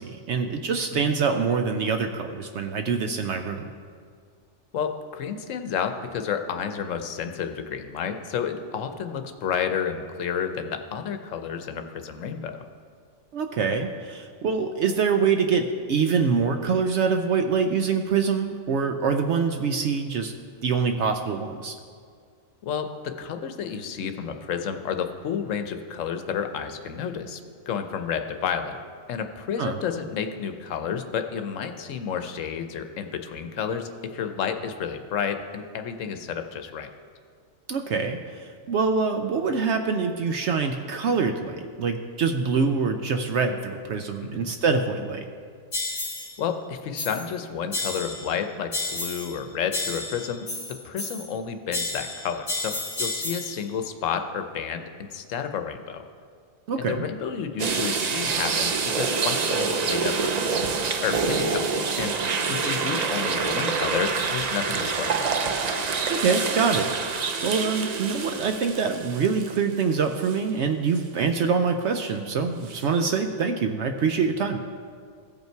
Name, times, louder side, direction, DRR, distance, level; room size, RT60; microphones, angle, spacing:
voice 1, 0.0-3.7 13.3-20.3 20.6-21.8 29.6-29.8 37.7-45.2 56.7-57.0 66.1-74.6, right 5 dB, 65° right, 6 dB, 0.8 m, -25 dB
voice 2, 4.7-12.6 22.6-27.4 27.7-28.8 29.1-36.9 44.2-44.4 46.4-56.0 56.8-65.3, left 7 dB, 80° left, 7 dB, 1.1 m, -31 dB
sound 1, 45.7-46.4 47.0-47.3 47.7-48.4 48.7-49.4 49.7-51.4 51.7-53.6, left 2 dB, 35° left, 1.4 m, -31 dB
sound 2, 57.6-69.8 70.2-70.4 72.7-72.8, right 5 dB, 50° right, 0.5 m, -26 dB
16.0 x 5.5 x 4.5 m, 2.1 s
omnidirectional pair, 1.3 m